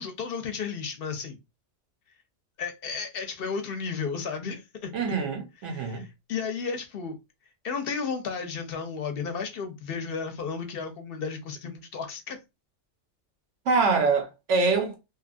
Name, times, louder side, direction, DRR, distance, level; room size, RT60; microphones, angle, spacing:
voice 1, 0.0-1.4 2.6-4.9 5.7-7.2 7.6-12.4, left 5 dB, 60° left, 0.7 m, -33 dB
voice 2, 4.9-6.0 13.7-15.0, right 4 dB, 80° right, 1.1 m, -25 dB
2.8 x 2.4 x 2.4 m
omnidirectional pair, 1.2 m